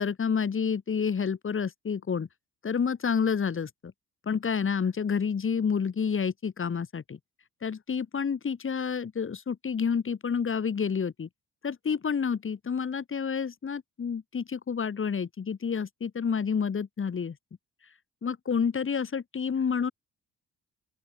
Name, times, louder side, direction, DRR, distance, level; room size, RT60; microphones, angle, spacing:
voice 1, 0.0-2.3 2.6-3.9 4.3-7.2 7.6-11.3 11.6-17.4 18.2-19.9, left 6 dB, 45° left, 6.5 m, -29 dB
open air
cardioid pair, 90°, 30 cm